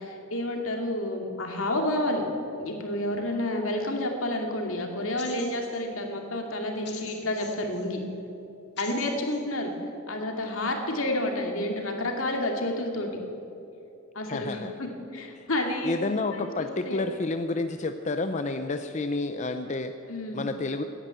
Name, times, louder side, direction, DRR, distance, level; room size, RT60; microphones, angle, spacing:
voice 1, 0.0-2.2 2.6-8.0 8.8-9.7 10.1-13.1 14.1-15.9 16.3-17.1 20.1-20.4, left 1 dB, 80° left, 2 dB, 2.4 m, -30 dB
sound 1, 5.2-5.8 6.8-7.9 8.8-9.4, left 7 dB, 55° left, 2.1 m, -45 dB
voice 2, 14.3-14.7 15.8-19.9 20.3-20.8, left 3 dB, 35° left, 8 dB, 0.5 m, -29 dB
15.5 x 10.0 x 9.2 m, 2.7 s
head